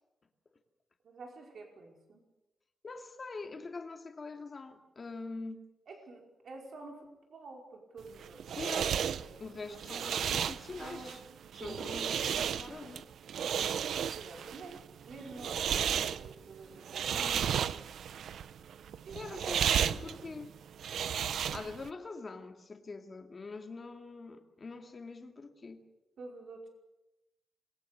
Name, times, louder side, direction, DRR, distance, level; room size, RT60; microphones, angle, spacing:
voice 1, 1.0-2.2 5.9-8.6 9.0-10.4 10.8-11.2 11.6-11.8 14.1-17.7 19.0-20.3 26.2-26.7, right 3 dB, 55° right, 2 dB, 5.1 m, -49 dB
voice 2, 2.8-5.7 8.6-9.0 9.4-11.2 11.6-13.1 17.1-17.6 19.1-20.5 21.5-25.8, left 3 dB, 30° left, 5 dB, 2.4 m, -44 dB
sound 1, 8.0-21.9, right 8 dB, 80° right, 0.7 m, -34 dB
27.0 x 22.0 x 6.8 m, 0.95 s
wide cardioid pair, 175°, 0 cm